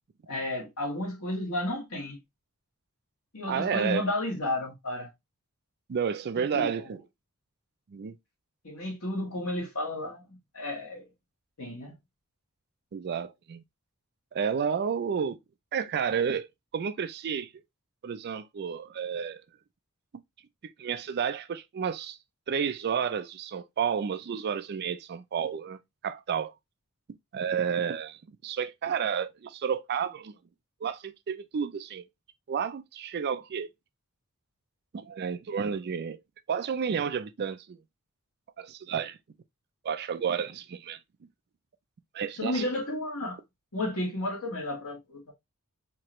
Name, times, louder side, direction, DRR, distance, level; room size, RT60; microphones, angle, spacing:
voice 1, 0.3-2.2 3.3-5.1 6.4-6.8 8.6-10.2 10.5-11.0 11.6-11.9 42.4-43.4 43.7-45.3, left 1 dB, 70° left, 2.2 m, -32 dB
voice 2, 3.5-4.1 5.9-7.0 7.9-8.1 12.9-13.6 14.3-15.4 15.7-16.5 16.7-17.5 18.0-19.4 20.6-22.2 22.5-26.5 27.3-30.3 30.8-32.1 32.5-33.7 34.9-36.2 36.5-37.8 38.6-39.2 39.8-41.0 42.1-42.6, right 7 dB, 50° right, 0.4 m, -31 dB
4.5 x 2.9 x 3.0 m
head